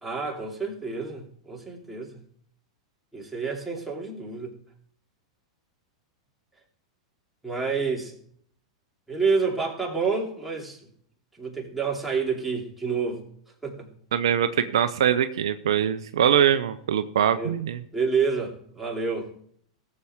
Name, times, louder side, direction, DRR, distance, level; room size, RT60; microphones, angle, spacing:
voice 1, 0.0-2.2 3.1-4.6 7.4-8.1 9.1-10.9 11.4-13.2 13.6-13.9 17.4-17.5 17.9-19.3, right 5 dB, 5° right, -2 dB, 2.9 m, -28 dB
voice 2, 14.1-17.8, right 9 dB, 70° right, 11 dB, 0.6 m, -23 dB
18.5 x 7.6 x 3.6 m, 0.64 s
hypercardioid pair, 95°, 3 cm